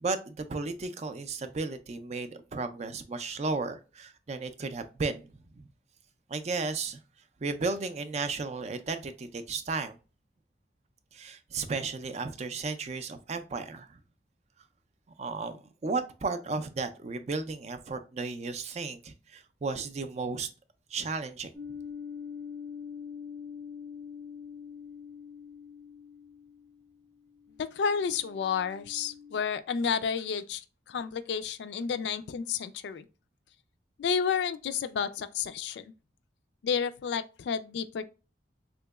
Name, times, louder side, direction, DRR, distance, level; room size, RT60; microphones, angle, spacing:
voice 1, 0.0-5.7 6.3-7.0 7.4-10.0 11.1-14.0 15.2-20.5 20.9-21.5, right 4 dB, 35° right, 0.4 m, -34 dB
sound 1, 21.5-29.4, left 6 dB, 15° left, 0.6 m, -44 dB
voice 2, 27.6-33.1 34.0-35.9 36.6-38.1, left 6 dB, 70° left, 0.3 m, -31 dB
3.6 x 3.0 x 2.3 m
head